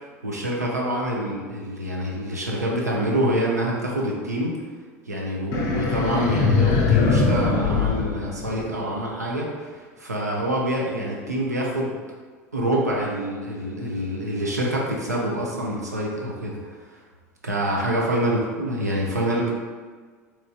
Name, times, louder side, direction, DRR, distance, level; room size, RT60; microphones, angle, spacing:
voice 1, 0.2-4.6 5.1-12.0 12.5-16.6 16.9-17.0 17.4-19.5, right 1 dB, 85° right, -3 dB, 0.5 m, -26 dB
sound 1, 5.5-9.0, left 4 dB, 45° left, 0.4 m, -21 dB
3.0 x 2.5 x 2.4 m, 1.5 s
figure-of-eight pair, 75°, 9 cm